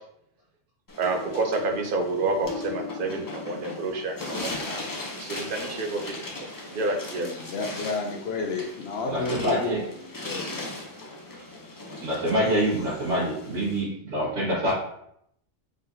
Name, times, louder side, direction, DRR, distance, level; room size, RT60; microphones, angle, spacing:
sound 1, 0.9-13.8, left 2 dB, 35° left, 0.3 m, -38 dB
voice 1, 1.0-4.2 4.4-4.8 5.2-6.1 6.7-7.3, right 3 dB, 55° right, 4 dB, 0.7 m, -28 dB
Bass guitar, 2.4-4.9, left 4 dB, 85° left, 1.8 m, -42 dB
voice 2, 7.2-9.6 10.2-10.5, left 3 dB, 65° left, 3 dB, 0.7 m, -31 dB
voice 3, 9.1-9.8 12.0-14.7, equal, 85° right, -11 dB, 1.8 m, -26 dB
4.1 x 3.9 x 2.6 m, 0.72 s
omnidirectional pair, 1.2 m